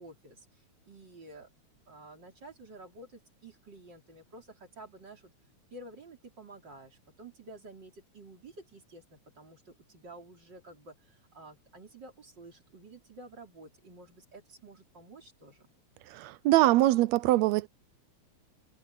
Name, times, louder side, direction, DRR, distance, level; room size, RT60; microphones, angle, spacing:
voice 1, 0.0-1.5 1.9-5.3 5.7-15.7, right 2 dB, 35° right, 4.4 m, -51 dB
voice 2, 16.1-17.7, right 16 dB, 80° right, 1.7 m, -23 dB
omnidirectional pair, 3.4 m